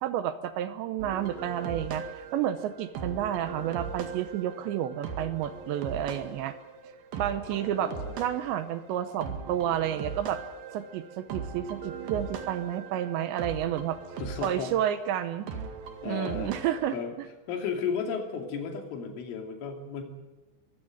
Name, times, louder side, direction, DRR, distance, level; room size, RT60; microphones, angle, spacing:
voice 1, 0.0-6.6 7.2-10.4 10.7-14.0 14.4-15.5 16.1-17.0, right 11 dB, 75° right, 11 dB, 2.8 m, -30 dB
sound 1, 1.0-17.0, right 5 dB, 55° right, 3.2 m, -40 dB
voice 2, 7.5-8.2 14.2-14.7 16.0-16.5 16.9-17.2 17.5-20.0, left 6 dB, 75° left, 3 dB, 5.3 m, -34 dB
23.0 x 15.5 x 9.3 m, 1.1 s
omnidirectional pair, 5.7 m